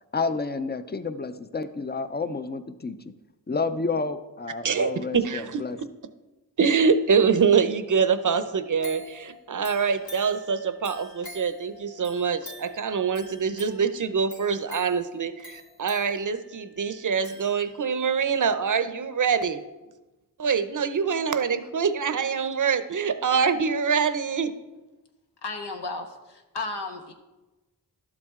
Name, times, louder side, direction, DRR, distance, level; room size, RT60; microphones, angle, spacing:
voice 1, 0.1-3.0 3.5-5.8, left 4 dB, 25° left, 12 dB, 0.6 m, -30 dB
voice 2, 4.6-5.6 6.6-19.6 20.4-24.5, right 6 dB, 50° right, 12 dB, 0.7 m, -24 dB
sound 1, 8.8-18.1 18.5-18.6, left 2 dB, 60° left, 1.8 m, -47 dB
voice 3, 25.4-27.1, left 3 dB, 80° left, 4 dB, 1.2 m, -34 dB
12.0 x 7.4 x 3.6 m, 1.1 s
cardioid pair, 60°, 40 cm